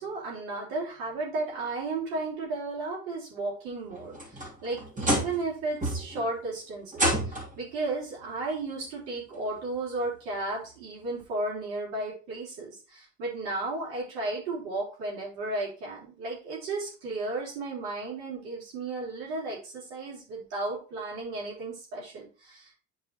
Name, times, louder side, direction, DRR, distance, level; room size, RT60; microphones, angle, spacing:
voice 1, 0.0-22.7, right 2 dB, 75° right, -4 dB, 3.4 m, -34 dB
sound 1, 3.9-5.5 5.8-6.3 6.9-7.6 8.8-8.9 9.5-9.6 11.2-11.3, right 1 dB, 25° right, 2.5 m, -29 dB
8.7 x 4.8 x 2.9 m, 0.36 s
hypercardioid pair, 60°, 33 cm